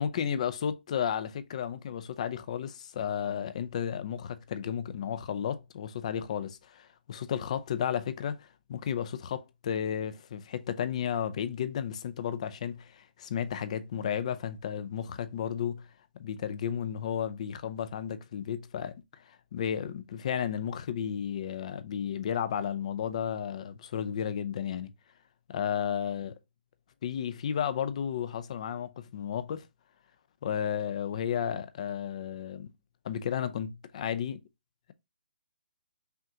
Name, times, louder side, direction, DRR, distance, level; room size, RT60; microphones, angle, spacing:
voice 1, 0.0-15.9 16.2-24.9 25.5-26.3 27.0-29.7 30.4-32.7 33.0-34.4, left 8 dB, 40° left, 0.4 m, -33 dB
5.6 x 2.5 x 2.8 m
hypercardioid pair, 160°, 6 cm